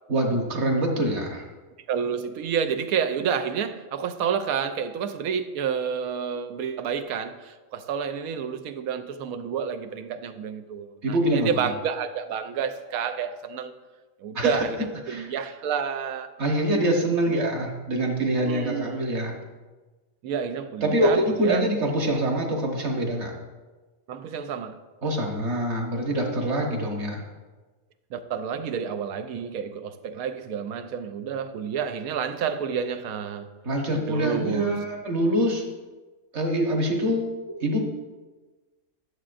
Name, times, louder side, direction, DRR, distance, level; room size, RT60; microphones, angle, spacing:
voice 1, 0.1-1.4 11.0-11.5 14.3-14.6 15.1-15.3 16.4-19.4 20.8-23.3 25.0-27.2 33.6-35.6 36.3-37.8, right 1 dB, 55° right, 1.5 m, -25 dB
voice 2, 1.9-13.7 14.2-16.3 17.3-17.6 18.4-19.0 20.2-21.7 24.1-24.8 26.6-26.7 28.1-33.5 33.9-34.8, right 7 dB, 85° right, 1.0 m, -29 dB
11.0 x 7.3 x 2.5 m
omnidirectional pair, 1.5 m